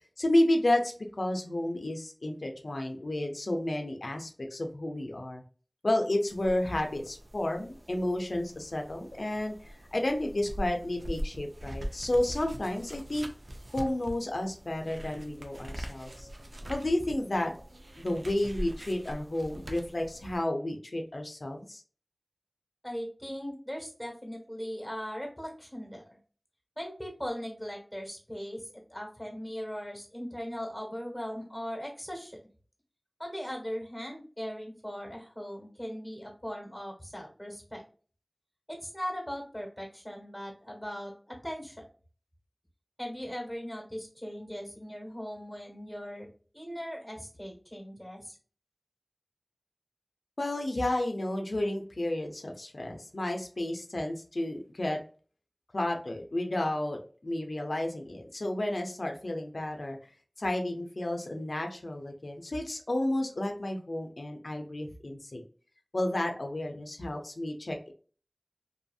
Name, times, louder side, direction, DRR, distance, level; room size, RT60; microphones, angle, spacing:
voice 1, 0.2-5.4 5.8-9.5 9.9-13.3 13.7-16.3 16.7-17.5 18.0-21.8 50.4-55.0 55.7-60.0 60.4-65.4 65.9-67.9, left 1 dB, 90° left, 3 dB, 0.4 m, -31 dB
sound 1, 6.3-20.4, equal, 75° right, 0.4 m, -42 dB
voice 2, 22.8-26.0 26.8-32.4 33.2-37.8 38.7-41.8 43.0-46.3 46.5-48.4, equal, 5° left, 0 dB, 1.2 m, -39 dB
2.7 x 2.6 x 2.3 m, 0.40 s
wide cardioid pair, 45°, 0 cm